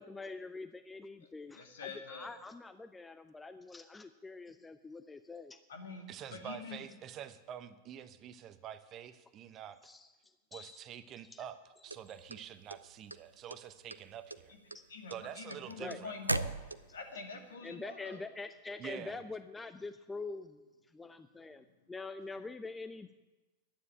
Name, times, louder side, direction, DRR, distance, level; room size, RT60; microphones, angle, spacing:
voice 1, 0.0-5.6 9.8-10.8 11.3-11.4 14.7-14.8 15.8-16.0 17.6-20.6 20.9-23.1, left 3 dB, 10° left, 11 dB, 0.5 m, -45 dB
voice 2, 1.5-2.3 5.7-6.8 14.5-14.6 14.9-16.5 16.9-18.2, left 4 dB, 65° left, 3 dB, 2.3 m, -45 dB
voice 3, 6.1-9.8 10.5-14.5 15.1-16.2 18.8-19.2, right 9 dB, 35° right, 12 dB, 0.8 m, -47 dB
sound 1, 11.9-13.2 13.5-14.0 14.3-17.1, right 2 dB, 85° right, 0.5 m, -37 dB
11.5 x 9.6 x 8.8 m, 1.1 s
figure-of-eight pair, 90°, 0 cm